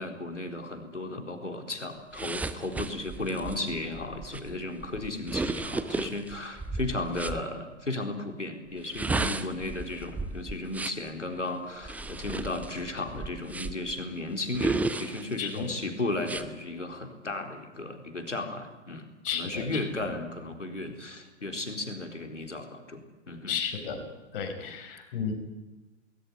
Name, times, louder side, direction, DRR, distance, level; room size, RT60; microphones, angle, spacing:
voice 1, 0.0-19.1 19.3-23.6 24.6-24.7, left 2 dB, 80° left, 5 dB, 4.1 m, -35 dB
sound 1, 2.1-7.4 8.8-11.1 11.8-13.9 14.5-15.6 16.2-16.4, right 3 dB, 5° right, 0.7 m, -34 dB
voice 2, 15.4-15.7 19.2-19.8 23.5-24.0 24.3-25.3, left 7 dB, 50° left, 4 dB, 6.0 m, -33 dB
20.0 x 19.5 x 9.9 m, 1.1 s
figure-of-eight pair, 110°, 36 cm